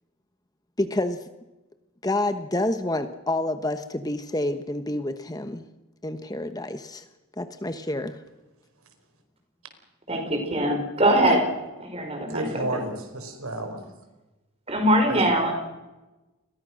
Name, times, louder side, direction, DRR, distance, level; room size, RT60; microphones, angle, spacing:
voice 1, 0.8-1.2 2.0-5.7 6.0-7.1 7.4-8.2, left 1 dB, 15° left, 9 dB, 1.1 m, -28 dB
voice 2, 10.1-11.5 11.8-12.8 14.7-15.5, right 1 dB, 25° right, 4 dB, 5.4 m, -22 dB
voice 3, 12.3-13.8 15.0-15.3, right 1 dB, 80° right, 7 dB, 4.9 m, -32 dB
30.0 x 22.5 x 6.4 m, 1.1 s
head